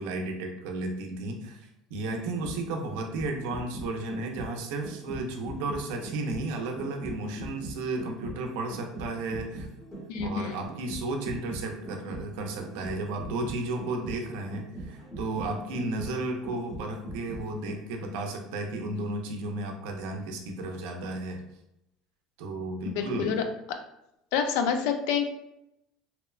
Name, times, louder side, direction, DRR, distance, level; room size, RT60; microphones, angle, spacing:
voice 1, 0.0-9.7 10.2-21.4 22.4-23.4, right 2 dB, 75° right, 3 dB, 0.5 m, -33 dB
sound 1, 2.2-18.0 18.4-18.5, right 2 dB, 10° left, 0.8 m, -41 dB
voice 2, 10.1-10.6 22.9-23.4 24.3-25.3, left 7 dB, 70° left, 6 dB, 0.3 m, -28 dB
2.8 x 2.1 x 2.3 m, 0.85 s
cardioid pair, 160°, 0 cm